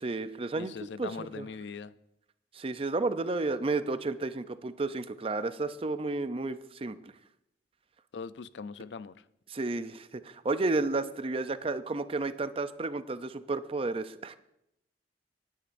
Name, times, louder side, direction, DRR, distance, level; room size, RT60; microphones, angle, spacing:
voice 1, 0.0-1.5 2.5-7.1 9.5-14.4, right 3 dB, 35° right, 12 dB, 0.5 m, -32 dB
voice 2, 0.6-1.9 8.1-9.2, left 5 dB, 85° left, 15 dB, 0.5 m, -41 dB
18.5 x 10.0 x 2.6 m, 0.80 s
head